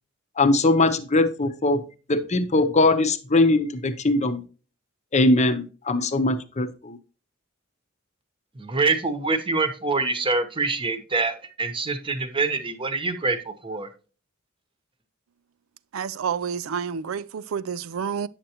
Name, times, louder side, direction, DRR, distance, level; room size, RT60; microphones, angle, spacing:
voice 1, 0.4-1.8 2.1-4.4 5.1-7.0, left 2 dB, 35° left, 0.8 m, -21 dB
voice 2, 8.6-13.9, right 3 dB, 25° right, 1.0 m, -25 dB
voice 3, 15.9-18.3, right 7 dB, 75° right, 0.4 m, -29 dB
8.8 x 6.7 x 2.9 m
head